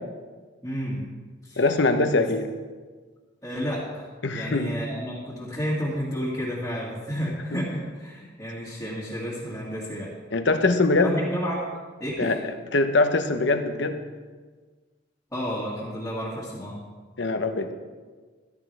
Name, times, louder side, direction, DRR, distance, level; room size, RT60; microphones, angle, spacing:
voice 1, 0.6-1.1 1.4-1.6 2.1-2.2 3.4-10.1 11.0-11.6 12.0-12.4 15.3-16.8, equal, 10° left, -8 dB, 2.2 m, -31 dB
voice 2, 1.6-2.5 4.2-4.7 10.3-11.1 12.2-12.4 12.7-14.0 17.2-17.7, left 3 dB, 65° left, 7 dB, 1.0 m, -22 dB
14.5 x 13.0 x 3.4 m, 1.4 s
head